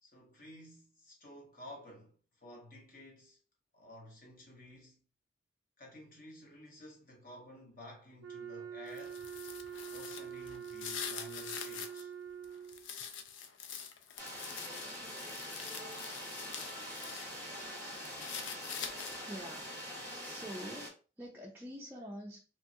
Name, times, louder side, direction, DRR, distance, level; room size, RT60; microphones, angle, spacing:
voice 1, 0.0-3.4 3.7-5.0 5.8-9.2 9.9-12.1, left 1 dB, 45° left, 1.0 m, -53 dB
Wind instrument woodwind instrument, 8.2-12.9, right 8 dB, 80° right, 0.3 m, -45 dB
sound 1, 8.9-12.0 12.4-17.3 17.6-19.4, left 7 dB, 85° left, 0.4 m, -45 dB
sound 2, 14.2-20.9, equal, 10° left, 1.0 m, -44 dB
voice 2, 19.2-19.9 20.2-22.4, equal, 10° right, 0.4 m, -46 dB
3.0 x 2.3 x 2.6 m
head